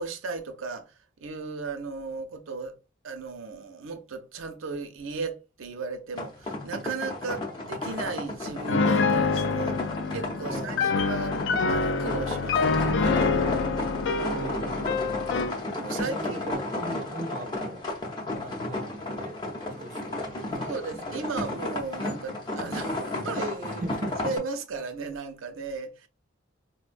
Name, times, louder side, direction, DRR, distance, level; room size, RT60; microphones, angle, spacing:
voice 1, 0.0-2.8 3.0-9.8 10.1-11.3 11.7-13.4 15.8-16.4 20.6-23.8 24.2-26.1, right 4 dB, 90° right, 0.6 m, -35 dB
sound 1, 6.1-24.4, left 2 dB, 20° left, 0.6 m, -33 dB
Piano, 8.7-15.6, left 4 dB, 65° left, 0.3 m, -26 dB
voice 2, 10.4-11.0 14.2-15.2 16.0-17.8 18.3-19.4 19.7-21.0 23.8-24.2, right 1 dB, 40° right, 0.4 m, -39 dB
4.3 x 2.1 x 2.5 m
head